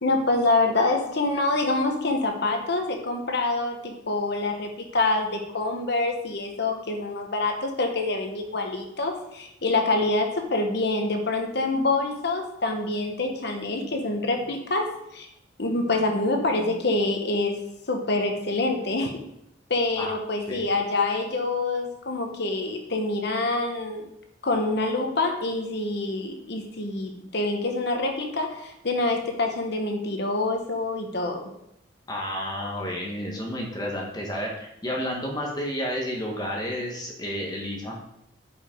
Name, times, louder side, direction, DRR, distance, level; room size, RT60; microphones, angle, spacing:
voice 1, 0.0-15.3 15.6-17.6 17.9-19.2 19.7-24.0 24.4-31.5, left 2 dB, 65° left, 3 dB, 1.2 m, -26 dB
voice 2, 32.1-37.9, equal, 20° left, -1 dB, 1.2 m, -31 dB
11.5 x 5.3 x 3.7 m, 0.81 s
head